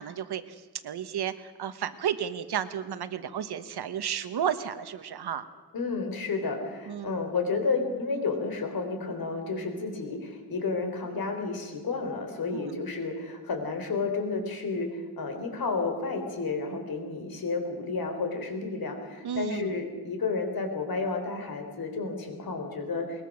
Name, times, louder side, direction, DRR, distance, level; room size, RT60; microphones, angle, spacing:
voice 1, 0.0-5.5 6.9-7.1 19.2-19.8, right 9 dB, 85° right, 11 dB, 1.3 m, -32 dB
voice 2, 5.7-23.2, left 4 dB, 65° left, 5 dB, 3.7 m, -31 dB
21.0 x 21.0 x 6.5 m, 1.4 s
wide cardioid pair, 155°, 38 cm